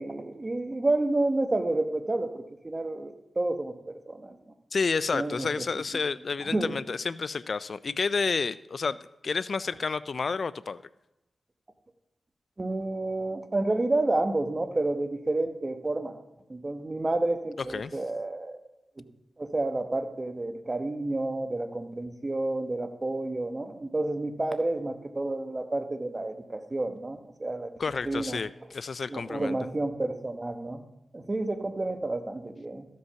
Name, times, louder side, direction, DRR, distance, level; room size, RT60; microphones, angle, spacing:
voice 1, 0.0-4.4 5.1-5.5 6.4-6.8 12.6-16.2 16.5-18.6 19.0-19.1 19.4-27.7 28.0-28.4 29.1-30.9 31.1-32.9, right 2 dB, 35° right, 7 dB, 1.2 m, -30 dB
voice 2, 4.7-9.0 9.2-10.8 17.7-17.9 27.8-29.6, left 4 dB, 65° left, 17 dB, 0.3 m, -30 dB
14.0 x 5.3 x 5.7 m, 0.94 s
cardioid pair, 55°, 0 cm